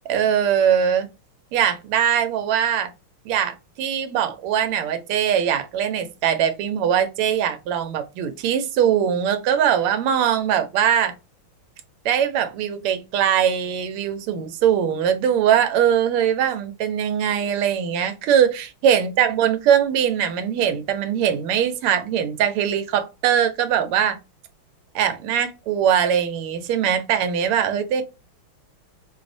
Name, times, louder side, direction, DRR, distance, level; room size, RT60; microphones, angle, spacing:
voice 1, 0.1-1.1 1.5-2.9 3.3-11.1 12.0-24.2 24.9-28.0, right 9 dB, 90° right, 1.6 m, -21 dB
4.8 x 2.0 x 2.5 m
omnidirectional pair, 2.4 m